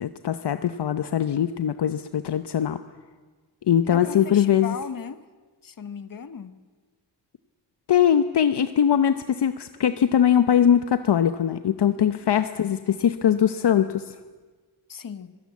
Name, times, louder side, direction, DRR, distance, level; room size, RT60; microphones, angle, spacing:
voice 1, 0.0-2.8 3.7-4.7 7.9-14.1, left 9 dB, 65° left, 0.8 m, -21 dB
voice 2, 3.9-5.2 5.6-6.6 11.9-12.2 14.9-15.4, left 6 dB, 50° left, 1.2 m, -37 dB
26.0 x 17.0 x 8.4 m
wide cardioid pair, 120°, 43 cm